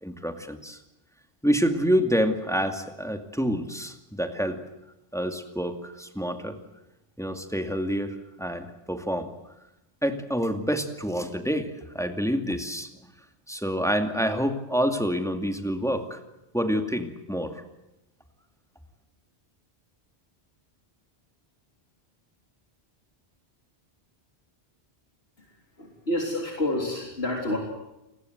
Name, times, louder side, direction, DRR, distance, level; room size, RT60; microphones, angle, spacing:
voice 1, 0.0-0.8 1.4-4.6 5.1-6.6 7.2-9.3 10.0-12.9 13.5-16.2 16.5-17.6, equal, 5° left, 6 dB, 2.4 m, -27 dB
voice 2, 25.8-27.6, left 1 dB, 70° left, 0 dB, 4.0 m, -28 dB
29.5 x 20.5 x 8.0 m, 0.92 s
omnidirectional pair, 1.1 m